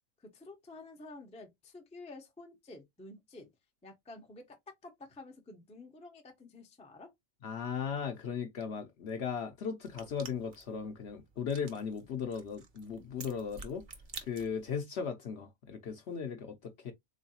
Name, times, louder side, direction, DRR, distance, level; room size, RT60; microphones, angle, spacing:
voice 1, 0.2-3.5 3.8-7.1, left 2 dB, 10° left, 0.4 m, -50 dB
voice 2, 7.4-13.8 14.2-16.9, left 6 dB, 60° left, 0.7 m, -37 dB
sound 1, 9.8-14.8, right 4 dB, 45° right, 0.7 m, -50 dB
3.7 x 3.1 x 2.7 m
omnidirectional pair, 1.5 m